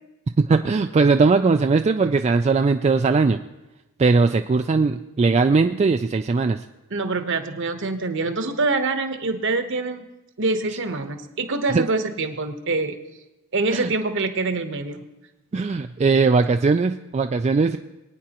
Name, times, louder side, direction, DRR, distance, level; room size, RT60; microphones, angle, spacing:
voice 1, 0.4-3.4 4.0-6.6 11.7-11.9 13.7-13.9 15.5-17.8, right 4 dB, 30° right, 7 dB, 0.3 m, -19 dB
voice 2, 6.9-10.0 10.4-12.9 13.5-15.0, right 3 dB, 60° right, 7 dB, 1.1 m, -25 dB
24.5 x 9.4 x 3.0 m, 1.0 s
head